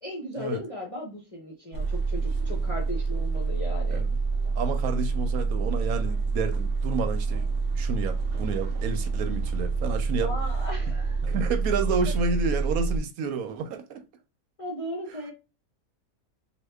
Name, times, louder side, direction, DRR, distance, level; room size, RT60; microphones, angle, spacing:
voice 1, 0.0-4.0 10.2-11.2 14.6-15.3, left 1 dB, 35° left, 0.6 m, -36 dB
sound 1, 1.7-13.0, right 4 dB, 60° right, 0.8 m, -27 dB
voice 2, 4.6-7.4 7.8-10.3 11.2-14.0, right 4 dB, 80° right, 1.1 m, -30 dB
2.9 x 2.3 x 3.4 m
omnidirectional pair, 1.5 m